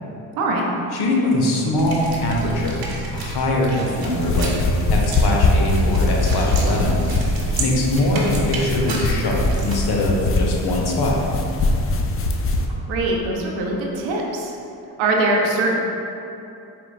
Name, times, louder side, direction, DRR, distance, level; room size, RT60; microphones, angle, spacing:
voice 1, 0.9-2.8 3.1-7.0 7.6-11.2, left 1 dB, 55° left, -1 dB, 0.8 m, -22 dB
sound 1, 1.8-9.7, right 3 dB, 50° right, 0.9 m, -30 dB
sound 2, 4.0-12.6, left 2 dB, 30° left, 0.4 m, -22 dB
voice 2, 12.9-14.6 15.0-15.7, right 2 dB, 80° right, -1 dB, 0.7 m, -22 dB
4.3 x 3.7 x 2.3 m, 2.7 s
hypercardioid pair, 45°, 47 cm